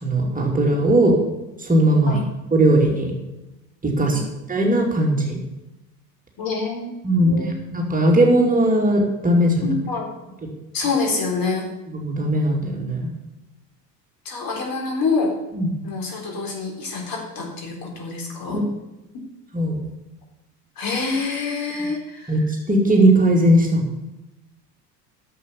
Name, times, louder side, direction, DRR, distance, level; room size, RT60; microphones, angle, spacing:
voice 1, 0.0-1.2 1.6-2.2 2.5-3.1 3.8-4.2 4.5-5.4 7.0-9.7 11.9-13.1 15.5-15.7 18.5-18.7 19.5-19.8 22.3-22.4 22.7-23.9, right 1 dB, 15° right, 0 dB, 2.5 m, -18 dB
voice 2, 6.4-6.9 7.2-7.5 9.6-10.1 10.7-11.7 14.3-15.4 15.8-18.6 20.8-22.4, left 4 dB, 40° left, 1 dB, 3.9 m, -26 dB
11.0 x 7.5 x 7.0 m, 0.98 s
figure-of-eight pair, 70°, 50 cm